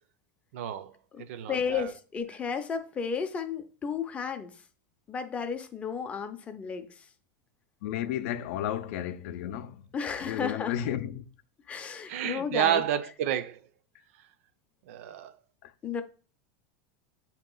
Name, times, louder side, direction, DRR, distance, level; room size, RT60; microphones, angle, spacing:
voice 1, 0.5-0.9 1.2-1.9 12.1-13.6 14.9-15.3, right 10 dB, 70° right, 0.5 m, -30 dB
voice 2, 1.5-4.5 5.1-6.9 9.9-10.8 11.7-12.8 15.8-16.0, left 6 dB, 15° left, 0.5 m, -33 dB
voice 3, 7.8-9.8 10.2-11.2 15.6-15.7, left 11 dB, 60° left, 0.5 m, -33 dB
8.7 x 2.9 x 3.8 m
supercardioid pair, 170°, 8 cm